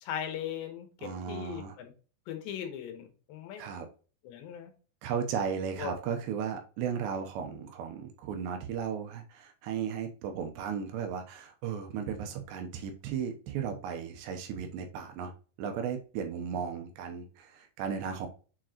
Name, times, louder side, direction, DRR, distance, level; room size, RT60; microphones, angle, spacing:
voice 1, 0.0-1.9 2.3-3.6 4.2-4.7 5.8-5.9, left 9 dB, 75° left, 5 dB, 3.3 m, -39 dB
voice 2, 1.0-1.8 3.6-3.9 5.0-15.3 15.6-18.3, right 7 dB, 75° right, 5 dB, 3.0 m, -35 dB
7.5 x 4.5 x 2.9 m, 0.36 s
omnidirectional pair, 5.2 m